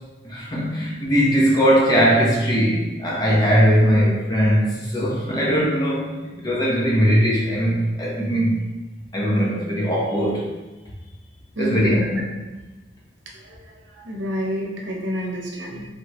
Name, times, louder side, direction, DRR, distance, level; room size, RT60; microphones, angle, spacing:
voice 1, 0.2-8.6 9.1-10.5 11.6-12.2 15.7-15.8, equal, 20° left, -4 dB, 0.9 m, -20 dB
voice 2, 11.6-12.2 13.4-13.6 13.9-15.9, equal, 80° right, -1 dB, 0.8 m, -27 dB
4.6 x 3.3 x 3.0 m, 1.1 s
head